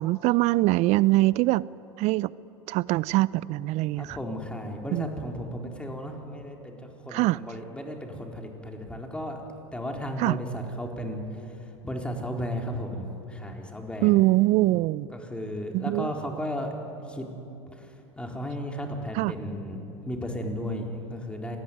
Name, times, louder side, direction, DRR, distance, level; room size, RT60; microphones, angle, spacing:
voice 1, 0.0-1.7 2.0-2.3 2.7-4.2 4.9-5.1 7.1-7.4 10.2-10.4 14.0-15.1 15.7-16.1 19.1-19.3, right 18 dB, 50° right, 21 dB, 0.6 m, -23 dB
voice 2, 4.0-9.4 9.7-14.2 15.1-16.7 17.0-17.3 17.7-21.6, equal, 5° left, 2 dB, 4.3 m, -34 dB
26.5 x 19.5 x 9.5 m, 2.9 s
hypercardioid pair, 85°, 15 cm